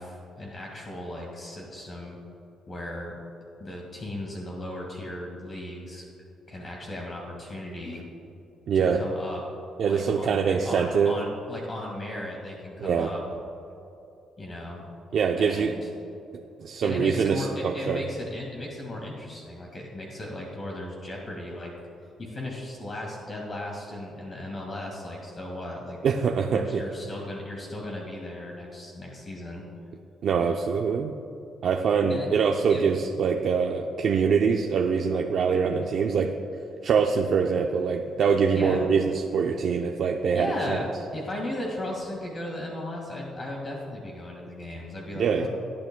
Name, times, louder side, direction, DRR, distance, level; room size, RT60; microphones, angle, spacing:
voice 1, 0.0-2.2 2.7-3.2 3.6-6.0 6.5-8.0 8.7-9.4 9.8-13.2 14.4-14.9 15.4-15.9 16.8-21.7 22.2-26.0 26.5-29.6 32.1-32.3 32.7-32.8 38.5-38.9 40.3-45.5, left 1 dB, 35° left, -1 dB, 1.9 m, -36 dB
voice 2, 8.7-9.0 9.8-11.1 12.8-13.1 15.1-15.7 16.6-18.0 26.0-26.8 30.2-31.1 31.6-36.3 36.8-40.8 45.1-45.5, right 6 dB, 65° right, 2 dB, 0.6 m, -24 dB
19.0 x 8.7 x 2.3 m, 2.8 s
cardioid pair, 90°, 0 cm